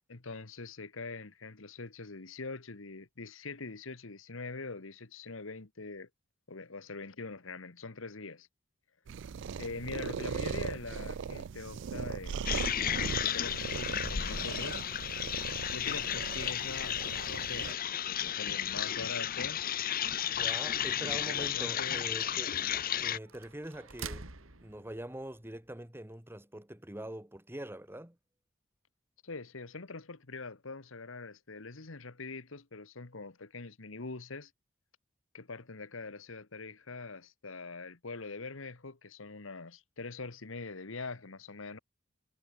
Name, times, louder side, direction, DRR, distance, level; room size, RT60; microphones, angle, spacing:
voice 1, 0.1-6.1 6.5-8.5 9.6-12.6 13.3-14.9 15.7-19.6 21.0-22.0 29.2-34.5 35.3-41.8, left 3 dB, 75° left, 1.5 m, -43 dB
sound 1, 9.1-17.7, right 6 dB, 65° right, 0.4 m, -39 dB
sound 2, 12.5-23.2, left 10 dB, 45° left, 0.8 m, -33 dB
sound 3, 16.7-25.7, right 4 dB, 85° right, 3.7 m, -52 dB
voice 2, 20.2-28.2, right 1 dB, 10° right, 1.9 m, -44 dB
head